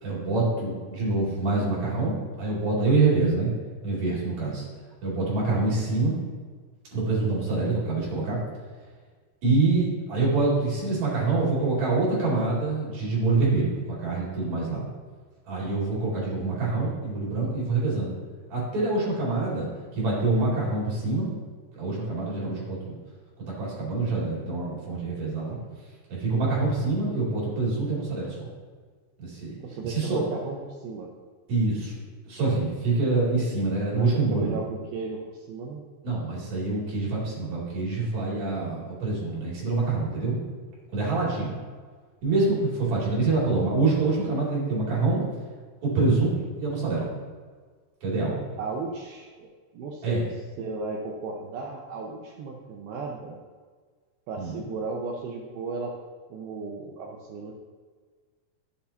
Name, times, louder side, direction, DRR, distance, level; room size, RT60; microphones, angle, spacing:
voice 1, 0.0-3.5 3.8-4.6 5.0-6.2 6.9-8.4 9.4-14.9 15.5-18.1 18.5-19.7 19.9-21.3 21.7-22.9 23.4-25.6 26.1-28.5 29.2-29.5 29.8-30.3 31.5-32.0 32.2-34.6 36.0-40.4 40.9-41.6 42.2-45.2 45.8-46.3 46.6-47.1 48.0-48.4 50.0-50.2 54.4-54.6, right 3 dB, 40° right, -6 dB, 3.5 m, -26 dB
voice 2, 29.6-31.1 33.9-35.8 48.6-50.3 50.6-53.4 54.3-55.9 56.3-57.6, right 3 dB, 85° right, -1 dB, 2.1 m, -35 dB
11.5 x 8.2 x 2.8 m, 1.5 s
omnidirectional pair, 5.5 m